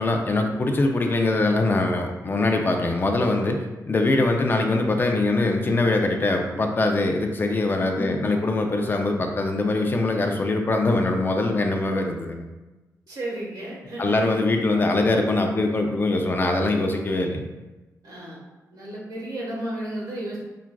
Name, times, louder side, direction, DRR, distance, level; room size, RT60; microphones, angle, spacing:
voice 1, 0.0-12.5 14.0-17.5, left 2 dB, 30° left, 3 dB, 0.4 m, -23 dB
voice 2, 7.9-8.5 13.1-14.2 18.0-18.4 18.7-20.4, right 1 dB, 75° right, -4 dB, 1.1 m, -33 dB
5.8 x 2.3 x 2.2 m, 1.1 s
wide cardioid pair, 130°, 7 cm